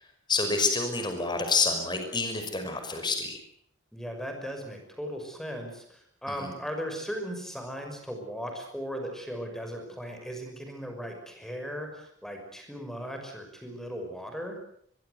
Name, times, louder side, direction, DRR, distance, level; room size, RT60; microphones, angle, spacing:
voice 1, 0.3-3.4 6.4-6.5, left 3 dB, 20° left, 5 dB, 5.5 m, -28 dB
voice 2, 3.9-14.6, equal, ahead, 4 dB, 5.8 m, -37 dB
23.0 x 23.0 x 8.1 m, 0.67 s
head